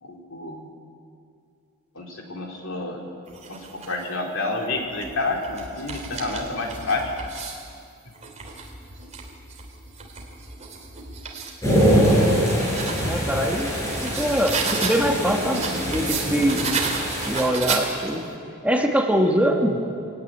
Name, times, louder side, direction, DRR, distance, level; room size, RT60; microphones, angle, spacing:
voice 1, 0.0-0.7 2.0-3.0 3.5-7.1 15.2-15.7, left 2 dB, 65° left, 1 dB, 3.8 m, -29 dB
sound 1, 3.3-4.1 4.8-7.7 8.2-11.6 12.1-15.1 15.5-18.3, right 4 dB, 30° right, 3.2 m, -33 dB
sound 2, 11.6-17.5, equal, 15° left, 7.9 m, -23 dB
voice 2, 13.0-16.8 17.3-18.2 18.6-19.8, equal, 5° right, 2 dB, 1.5 m, -23 dB
23.5 x 17.0 x 9.8 m, 2.4 s
head